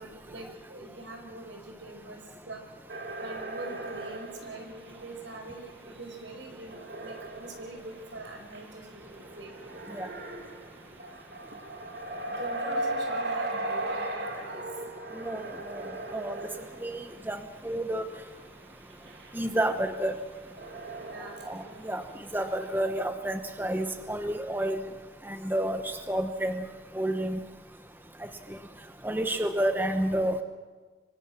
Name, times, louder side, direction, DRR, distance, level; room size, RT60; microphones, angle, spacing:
voice 1, 0.0-2.6 3.2-9.5 12.3-14.7 15.4-15.5 21.0-21.5, right 2 dB, 80° right, 3 dB, 5.7 m, -44 dB
sound 1, 2.9-6.0 6.3-17.6 18.0-18.1 18.8-22.6, right 1 dB, 65° right, 2.9 m, -38 dB
voice 2, 16.8-18.0 19.3-20.1 21.5-22.0 22.3-24.8 25.3-26.6 26.9-27.4 29.0-30.4, right 1 dB, 10° right, 7 dB, 1.0 m, -30 dB
26.5 x 25.0 x 6.3 m, 1.4 s
head